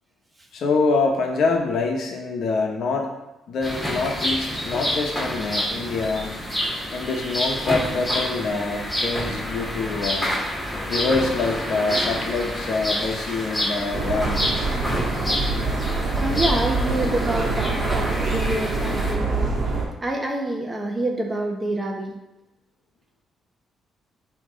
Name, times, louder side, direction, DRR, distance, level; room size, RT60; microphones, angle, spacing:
voice 1, 0.5-3.1 3.5-6.4 6.9-10.3 10.9-14.5 20.0-20.5, left 3 dB, 65° left, 2 dB, 0.9 m, -25 dB
sound 1, 3.6-19.1, equal, 5° left, 1.9 m, -28 dB
sound 2, 13.9-19.8, right 3 dB, 55° right, 1.3 m, -25 dB
voice 2, 16.1-19.6 20.0-22.1, right 1 dB, 20° right, 2 dB, 1.0 m, -27 dB
8.6 x 3.0 x 3.7 m, 0.93 s
cardioid pair, 90°, 0 cm